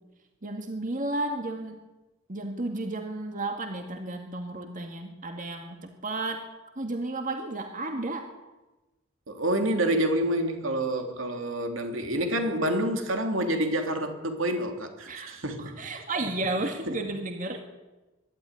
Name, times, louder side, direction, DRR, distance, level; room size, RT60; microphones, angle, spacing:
voice 1, 0.4-1.8 2.3-6.5 6.8-8.3 15.1-17.6, right 2 dB, 40° right, 5 dB, 2.0 m, -33 dB
voice 2, 9.3-15.7 16.2-16.3 16.9-17.0, right 1 dB, 80° right, 5 dB, 3.1 m, -28 dB
23.5 x 12.5 x 9.9 m, 1.1 s
head